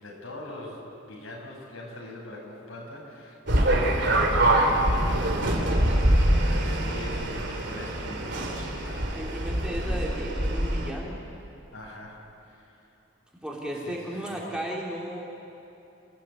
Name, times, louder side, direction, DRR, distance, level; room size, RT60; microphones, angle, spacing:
voice 1, 0.0-9.2 11.7-12.2 12.4-12.8 13.8-14.4, left 1 dB, 85° left, -2 dB, 6.7 m, -42 dB
sound 1, 3.5-10.9, right 1 dB, 55° right, 3.1 m, -24 dB
voice 2, 9.1-11.2 13.4-15.2, equal, 5° right, -4 dB, 3.3 m, -34 dB
30.0 x 15.5 x 8.6 m, 2.8 s
head